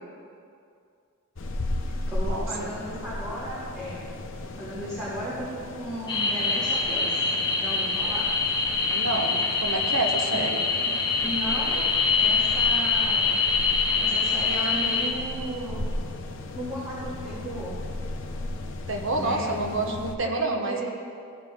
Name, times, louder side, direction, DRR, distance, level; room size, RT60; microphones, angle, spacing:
sound 1, 1.4-20.2, left 2 dB, 55° left, 0.7 m, -36 dB
voice 1, 2.1-4.1 4.4-7.3 7.5-8.3 10.3-10.4 10.8-10.9 11.2-11.9 12.2-13.3 14.0-15.8 16.5-17.7 19.1-20.0 20.2-20.9, equal, 10° right, -14 dB, 2.6 m, -35 dB
sound 2, 6.1-15.1, left 4 dB, 20° left, 0.9 m, -25 dB
voice 2, 8.9-10.6 18.9-20.9, right 2 dB, 55° right, 3 dB, 1.0 m, -28 dB
14.5 x 5.0 x 5.3 m, 2.4 s
head